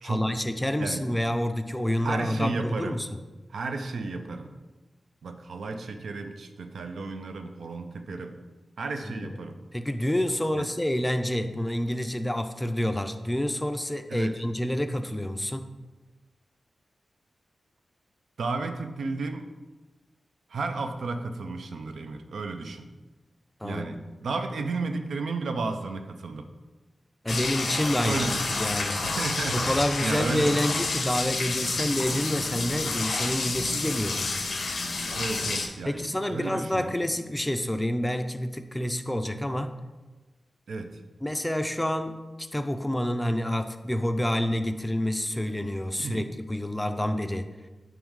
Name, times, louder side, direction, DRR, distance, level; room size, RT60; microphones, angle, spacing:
voice 1, 0.0-3.1 9.1-9.3 9.7-15.7 23.6-23.9 27.2-28.3 28.6-29.0 29.5-34.4 35.9-39.7 41.2-47.5, left 1 dB, 15° left, 9 dB, 0.3 m, -28 dB
voice 2, 2.0-3.0 3.5-4.5 5.2-8.3 8.8-9.5 10.5-10.7 14.1-14.3 18.4-19.5 20.5-22.9 23.6-26.5 28.0-28.6 29.0-30.8 32.8-33.0 35.1-36.9 40.7-40.9 46.0-46.2, right 3 dB, 85° right, 6 dB, 0.3 m, -33 dB
sound 1, 27.3-35.7, left 3 dB, 75° left, 0.5 m, -29 dB
3.5 x 3.1 x 4.7 m, 1.2 s
cardioid pair, 50°, 0 cm